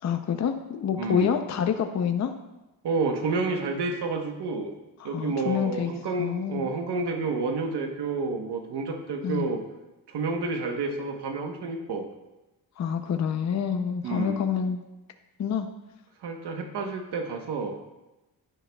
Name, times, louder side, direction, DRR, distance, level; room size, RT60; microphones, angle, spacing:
voice 1, 0.0-2.3 5.0-5.9 6.2-6.7 9.2-9.5 12.8-14.8 15.4-15.7, left 7 dB, 45° left, 6 dB, 0.6 m, -27 dB
voice 2, 1.0-1.3 2.8-4.7 5.0-9.6 10.1-12.1 14.0-14.4 16.2-17.8, right 3 dB, 80° right, 4 dB, 1.1 m, -29 dB
10.0 x 10.0 x 2.3 m, 1.0 s
cardioid pair, 110°, 40 cm